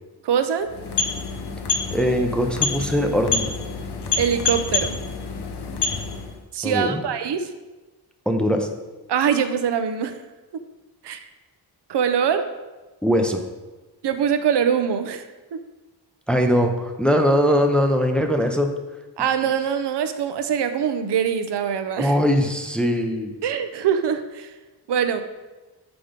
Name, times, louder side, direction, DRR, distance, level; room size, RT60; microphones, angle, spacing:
voice 1, 0.2-0.7 4.2-5.0 6.5-7.5 9.1-10.2 11.0-11.2 11.9-12.5 14.0-15.3 15.5-15.6 19.2-22.2 23.4-24.5 24.9-25.2, right 8 dB, 85° right, 9 dB, 0.6 m, -23 dB
sound 1, 0.6-6.4, left 5 dB, 75° left, 0.9 m, -27 dB
voice 2, 1.9-3.5 6.6-7.0 8.3-8.7 13.0-13.4 16.3-18.7 22.0-23.3, equal, ahead, 4 dB, 0.5 m, -21 dB
6.0 x 4.9 x 5.1 m, 1.2 s
wide cardioid pair, 175°, 40 cm